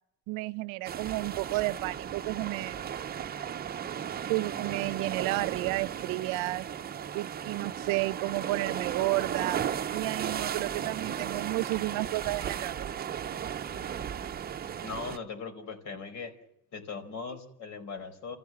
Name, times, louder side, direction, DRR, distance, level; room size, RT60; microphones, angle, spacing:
voice 1, 0.3-2.8 4.3-6.7 7.1-9.6 9.9-12.9, right 20 dB, 85° right, 0.7 m, -32 dB
sound 1, 0.9-15.2, right 8 dB, 30° right, 0.8 m, -35 dB
voice 2, 14.8-16.3 16.7-18.4, left 5 dB, 65° left, 4.9 m, -39 dB
28.0 x 14.5 x 7.6 m
cardioid pair, 135°, 33 cm